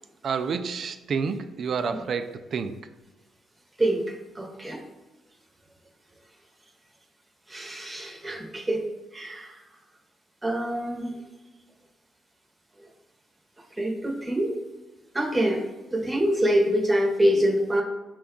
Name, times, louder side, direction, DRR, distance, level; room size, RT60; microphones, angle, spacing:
voice 1, 0.2-2.8, right 5 dB, 55° right, 9 dB, 0.3 m, -29 dB
voice 2, 3.8-4.8 7.5-8.8 9.1-9.6 10.4-11.1 13.7-14.5 15.1-15.6 15.9-17.8, equal, 15° right, 1 dB, 0.8 m, -25 dB
5.0 x 2.3 x 3.6 m, 1.2 s
cardioid pair, 90°, 0 cm